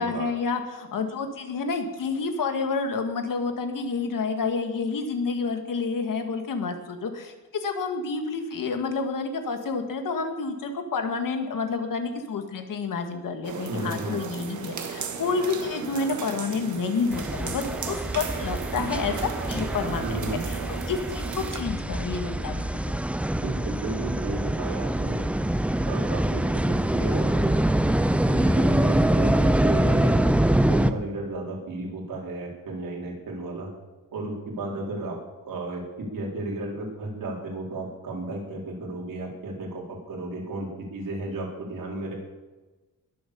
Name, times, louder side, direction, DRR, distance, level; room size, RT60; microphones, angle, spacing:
voice 1, 0.0-7.3 7.6-19.1 19.5-21.2 21.5-22.7, left 4 dB, 75° left, 5 dB, 2.2 m, -29 dB
sound 1, 13.4-21.6, right 6 dB, 60° right, 1.8 m, -35 dB
voice 2, 13.7-14.1 20.0-20.4 23.3-25.2 25.8-26.4 26.7-27.5 28.3-33.7 34.1-35.2 35.4-40.7 40.9-42.1, right 2 dB, 80° right, -2 dB, 4.8 m, -33 dB
sound 2, 17.1-30.9, right 1 dB, 5° right, 0.5 m, -24 dB
21.5 x 7.9 x 7.1 m, 1.2 s
wide cardioid pair, 145°, 33 cm